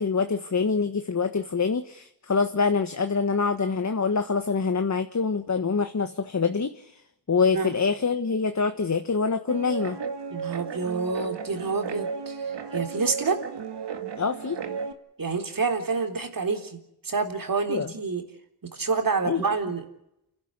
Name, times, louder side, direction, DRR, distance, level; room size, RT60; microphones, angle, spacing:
voice 1, 0.0-6.9 7.3-10.0 14.2-14.6 17.7-17.9 19.2-19.4, left 5 dB, 40° left, 8 dB, 1.4 m, -25 dB
Guitar, 9.5-14.9, right 6 dB, 80° right, 2.2 m, -34 dB
voice 2, 10.3-13.4 15.2-16.8 17.0-18.2 18.7-19.8, right 4 dB, 55° right, 5 dB, 3.9 m, -28 dB
29.0 x 12.5 x 9.5 m, 0.81 s
cardioid pair, 60°, 42 cm